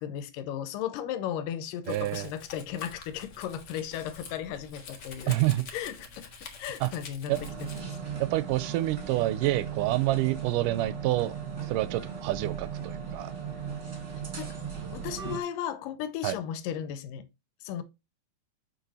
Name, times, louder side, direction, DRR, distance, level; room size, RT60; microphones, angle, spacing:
voice 1, 0.0-5.4 5.7-6.3 6.6-8.0 14.2-14.6 14.9-17.3 17.6-17.8, left 10 dB, 85° left, 2.5 m, -35 dB
Domestic sounds home sounds, 1.8-7.8, left 4 dB, 55° left, 1.2 m, -46 dB
voice 2, 1.9-2.3 5.3-5.6 6.8-6.9 7.3-7.4 8.2-11.4 11.6-13.3 16.2-16.3, right 16 dB, 80° right, 2.1 m, -27 dB
sound 1, 7.3-15.4, right 7 dB, 30° right, 1.4 m, -37 dB
6.6 x 5.1 x 4.2 m
omnidirectional pair, 3.8 m